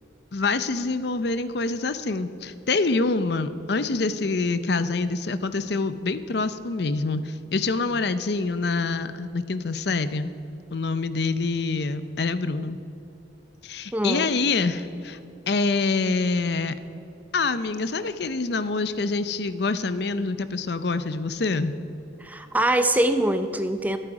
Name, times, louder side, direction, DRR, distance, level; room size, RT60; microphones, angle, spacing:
voice 1, 0.3-10.3 10.7-12.8 13.6-15.2 15.5-16.8 17.3-21.7, left 3 dB, 60° left, 12 dB, 0.6 m, -26 dB
voice 2, 13.9-14.3 22.2-24.0, right 1 dB, 10° right, 9 dB, 0.6 m, -23 dB
24.5 x 9.0 x 4.9 m, 2.8 s
head